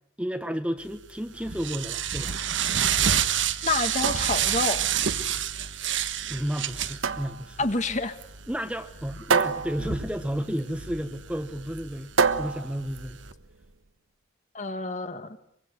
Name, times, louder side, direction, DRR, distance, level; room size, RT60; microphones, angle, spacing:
voice 1, 0.2-2.4 6.3-7.6 8.5-13.2, equal, 5° right, 8 dB, 1.2 m, -32 dB
sound 1, 0.9-13.3, right 9 dB, 65° right, 1.3 m, -30 dB
voice 2, 3.6-4.9 7.6-8.2 14.5-15.3, left 3 dB, 35° left, 9 dB, 1.8 m, -28 dB
sound 2, 4.0-13.7, right 5 dB, 90° right, 1.3 m, -30 dB
24.5 x 24.5 x 9.5 m, 0.72 s
head